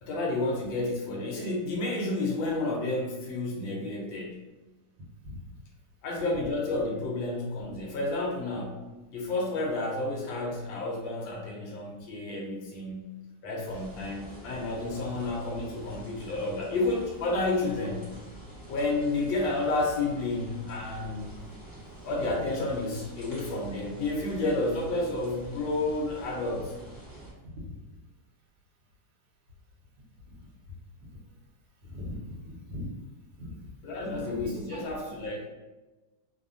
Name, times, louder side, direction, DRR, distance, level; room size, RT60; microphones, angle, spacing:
voice 1, 0.0-4.5 6.0-8.8 9.1-13.1 13.4-18.1 18.7-21.3 22.0-26.7 33.8-35.5, left 2 dB, 80° left, -1 dB, 1.4 m, -31 dB
sound 1, 13.6-27.3, right 1 dB, 30° left, 0.4 m, -47 dB
voice 2, 31.8-32.9 33.4-33.6 34.0-34.8, left 1 dB, 65° right, -2 dB, 1.3 m, -40 dB
3.3 x 2.1 x 2.5 m, 1.1 s
omnidirectional pair, 2.1 m